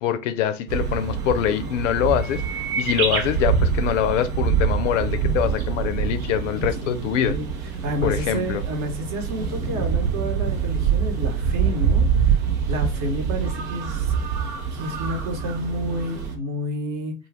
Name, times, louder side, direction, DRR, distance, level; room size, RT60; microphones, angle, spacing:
voice 1, 0.0-7.4 8.0-8.6, left 10 dB, 60° left, 0.5 m, -24 dB
sound 1, 0.7-16.4, right 6 dB, 70° right, 0.7 m, -25 dB
voice 2, 6.8-7.5 7.8-14.1 14.7-17.1, equal, 40° right, 0.9 m, -30 dB
2.5 x 2.3 x 3.2 m
figure-of-eight pair, 80°, 44 cm